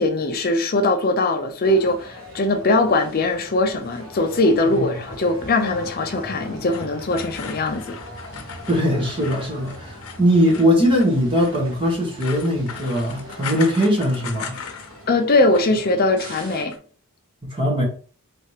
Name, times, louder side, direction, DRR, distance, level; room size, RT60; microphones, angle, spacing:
voice 1, 0.0-8.0 15.1-16.7, left 2 dB, 45° left, 0.6 m, -21 dB
sound 1, 1.6-16.6, left 1 dB, 60° right, 1.7 m, -39 dB
sound 2, 6.7-15.1 15.4-15.9 16.2-16.8, left 7 dB, 80° left, 0.8 m, -38 dB
voice 2, 8.7-14.6 17.4-17.8, equal, 25° right, 1.4 m, -20 dB
4.2 x 3.3 x 3.2 m
head